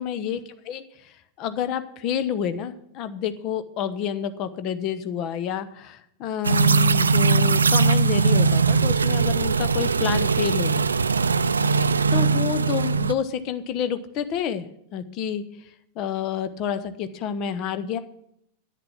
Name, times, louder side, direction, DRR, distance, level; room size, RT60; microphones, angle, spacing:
voice 1, 0.0-10.9 12.1-14.7 14.9-18.0, left 8 dB, 40° left, 11 dB, 1.0 m, -29 dB
sound 1, 6.4-13.1, right 4 dB, 75° right, 0.4 m, -20 dB
10.5 x 9.3 x 6.0 m, 0.74 s
figure-of-eight pair, 90°, 0 cm